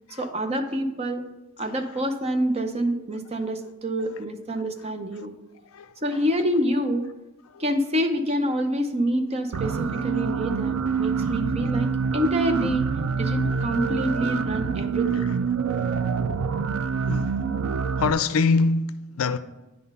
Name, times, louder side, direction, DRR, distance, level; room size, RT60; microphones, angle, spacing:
voice 1, 0.2-1.2 1.6-5.3 6.0-7.1 7.6-11.9 12.1-12.9 13.2-15.3, equal, 30° right, 0.7 m, -26 dB
voice 2, 1.6-2.0 3.4-3.5 5.2-5.3 5.6-6.3 7.5-7.6 9.5-9.7 11.0-11.3 15.7-15.8 17.0-17.4 18.0-19.4, left 4 dB, 80° left, 0.5 m, -27 dB
sound 1, 9.5-18.1, right 5 dB, 85° right, 0.4 m, -26 dB
9.8 x 4.1 x 5.4 m
head